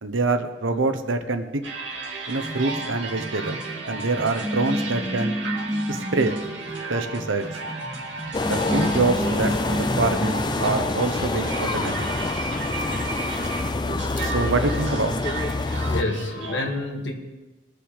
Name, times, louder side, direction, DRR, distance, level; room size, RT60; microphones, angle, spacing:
voice 1, 0.0-1.6 2.3-3.6 3.9-5.3 5.9-6.3 6.9-7.5 8.4-12.1 14.2-15.2, right 3 dB, 90° right, 8 dB, 1.0 m, -25 dB
sound 1, 1.6-16.6, right 3 dB, 70° right, 2.3 m, -34 dB
sound 2, 2.4-10.9, equal, 5° left, 2.1 m, -31 dB
sound 3, 8.3-16.0, left 3 dB, 25° left, 0.3 m, -26 dB
voice 2, 15.6-17.1, left 2 dB, 70° left, 2 dB, 1.7 m, -29 dB
20.0 x 6.7 x 5.0 m, 1.1 s
head